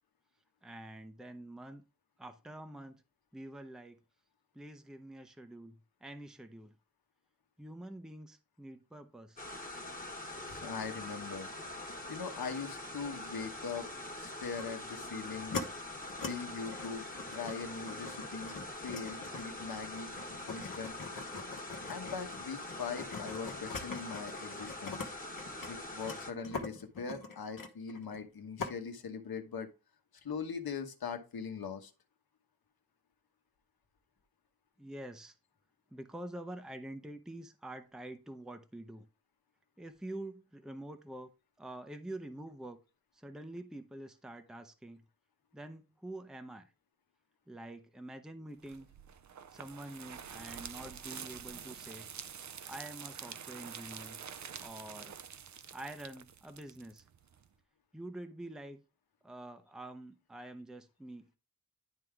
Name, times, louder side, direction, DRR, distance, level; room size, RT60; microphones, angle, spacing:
voice 1, 0.6-1.8 2.2-3.0 3.3-4.0 4.5-6.8 7.6-9.4 34.8-35.3 35.9-39.1 39.8-41.3 41.6-42.8 43.1-45.0 45.5-46.7 47.5-48.9 49.5-52.1 52.7-54.2 54.6-55.2 55.7-57.0 57.9-58.8 59.2-61.3, right 1 dB, ahead, 0.6 m, -46 dB
sound 1, 9.4-26.3, left 1 dB, 25° left, 1.3 m, -44 dB
voice 2, 10.5-11.5 12.1-13.9 14.2-15.6 16.2-17.0 17.3-18.6 18.8-20.1 20.5-21.0 21.9-25.0 25.7-29.7 30.2-31.9, left 5 dB, 85° left, 1.2 m, -41 dB
sound 2, 14.6-14.7 15.2-15.7 16.1-16.3 16.6-25.1 25.4-28.3 28.6-28.7, left 4 dB, 65° left, 1.2 m, -43 dB
sound 3, 48.6-57.5, right 7 dB, 55° right, 0.5 m, -47 dB
11.0 x 3.7 x 3.4 m
wide cardioid pair, 125°, 36 cm